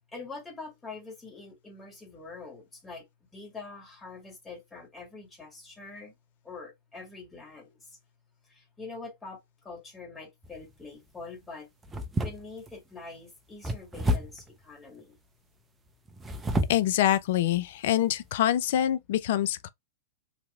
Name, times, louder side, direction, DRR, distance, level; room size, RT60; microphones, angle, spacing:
voice 1, 0.1-3.1 3.3-6.1 6.4-8.0 8.4-11.7 12.2-15.2, left 3 dB, 15° left, 1.8 m, -44 dB
sound 1, 10.4-10.8 11.8-12.7 13.6-14.5 16.1-16.9 17.5-17.6 18.1-18.3, equal, 15° right, 0.6 m, -30 dB
voice 2, 16.7-19.7, left 12 dB, 60° left, 0.3 m, -25 dB
3.4 x 2.8 x 2.2 m
hypercardioid pair, 105°, 0 cm